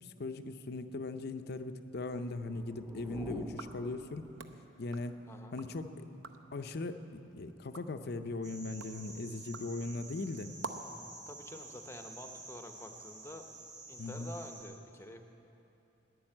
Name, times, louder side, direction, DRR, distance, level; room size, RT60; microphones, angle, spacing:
voice 1, 0.0-4.3 4.8-5.2 5.5-6.1 6.5-10.5 14.0-14.3, left 2 dB, 50° left, 9 dB, 0.5 m, -39 dB
sound 1, 2.2-4.8, right 1 dB, 15° right, 0.4 m, -48 dB
sound 2, 3.4-5.8 6.1-6.6 7.0-11.0, right 4 dB, 65° right, 0.7 m, -50 dB
sound 3, 8.4-14.6, right 3 dB, 40° right, 4.1 m, -50 dB
voice 2, 11.3-13.4 13.9-15.2, left 1 dB, 10° left, 5 dB, 0.7 m, -48 dB
11.5 x 10.0 x 8.8 m, 3.0 s
head